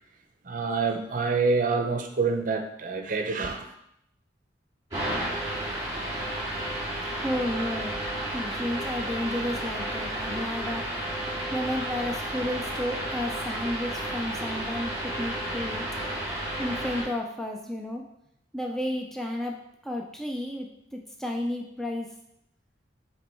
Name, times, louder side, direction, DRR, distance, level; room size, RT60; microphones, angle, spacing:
voice 1, 0.4-3.7, right 4 dB, 45° right, 0.6 m, -27 dB
sound 1, 4.9-17.0, right 1 dB, 15° right, 2.2 m, -32 dB
voice 2, 7.2-8.0 8.3-10.9 11.5-15.9 16.6-18.0 18.5-22.1, left 1 dB, ahead, 0.4 m, -32 dB
7.6 x 3.0 x 4.4 m
head